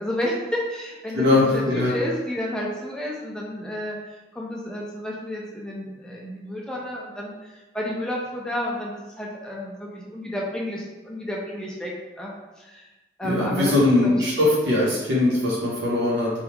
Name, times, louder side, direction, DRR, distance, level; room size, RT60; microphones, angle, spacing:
voice 1, 0.0-12.3 12.6-12.9 13.2-13.8 14.0-14.2, equal, 5° left, -3 dB, 0.4 m, -31 dB
voice 2, 1.1-1.9 13.2-16.3, left 2 dB, 75° right, -6 dB, 0.9 m, -21 dB
2.9 x 2.3 x 3.4 m, 1.1 s
head